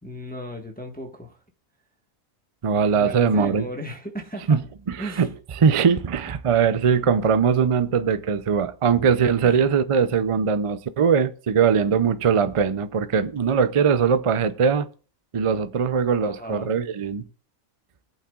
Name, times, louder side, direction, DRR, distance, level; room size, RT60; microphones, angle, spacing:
voice 1, 0.0-1.4 2.9-4.6 5.0-5.3 9.4-9.6 16.2-16.7, equal, 5° left, 1.3 m, -36 dB
voice 2, 2.6-3.7 4.5-4.6 4.9-14.9 15.3-17.2, right 6 dB, 55° right, 0.3 m, -21 dB
21.0 x 8.7 x 2.4 m
omnidirectional pair, 1.4 m